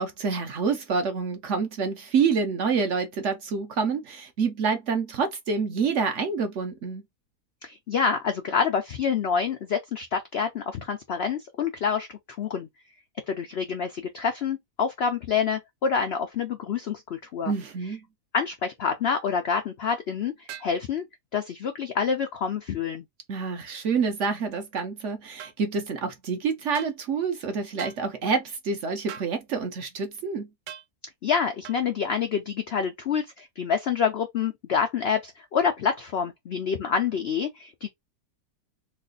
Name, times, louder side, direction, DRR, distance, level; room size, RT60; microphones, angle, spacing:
voice 1, 0.0-7.0 17.4-18.0 23.3-30.5, right 5 dB, 60° right, 0.8 m, -27 dB
voice 2, 7.6-12.7 13.3-17.5 18.3-21.1 21.3-23.0 31.2-37.9, left 6 dB, 90° left, 0.5 m, -27 dB
sound 1, 20.5-20.8 25.4-25.6 26.7-27.0 27.8-28.0 29.1-29.3 30.7-30.9 31.6-31.8, right 10 dB, 90° right, 1.2 m, -40 dB
3.2 x 2.4 x 3.7 m
omnidirectional pair, 1.8 m